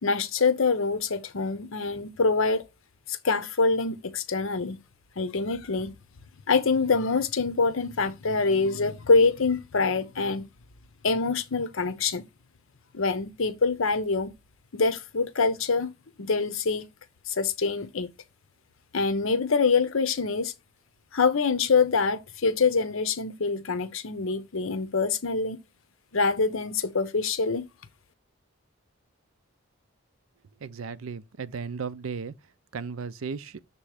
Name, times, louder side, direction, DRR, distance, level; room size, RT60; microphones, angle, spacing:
voice 1, 0.0-2.6 3.1-4.8 5.2-5.9 6.5-10.5 11.0-12.2 12.9-14.3 14.7-15.9 16.2-16.8 17.3-18.1 18.9-20.5 21.1-25.6 26.1-27.6, left 4 dB, 75° left, 0.8 m, -25 dB
voice 2, 30.6-32.3 32.7-33.6, right 5 dB, 80° right, 0.5 m, -35 dB
6.8 x 3.0 x 4.8 m
head